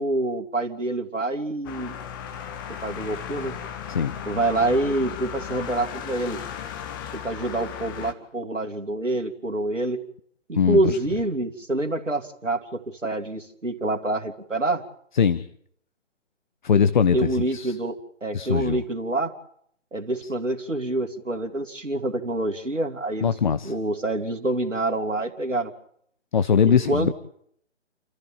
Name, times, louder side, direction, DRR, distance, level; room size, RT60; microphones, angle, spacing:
voice 1, 0.0-1.9 2.8-3.6 4.3-6.4 7.1-10.0 10.5-14.8 17.1-19.3 19.9-23.3 23.6-25.7 26.6-27.1, right 2 dB, 85° right, 3 dB, 2.5 m, -26 dB
sound 1, 1.6-8.1, left 9 dB, 15° left, 1.1 m, -36 dB
voice 2, 16.6-17.8 18.3-18.8 20.2-20.3 23.2-23.7 26.3-27.1, left 7 dB, 40° left, 14 dB, 0.9 m, -21 dB
29.0 x 14.5 x 8.9 m, 0.67 s
figure-of-eight pair, 140°, 37 cm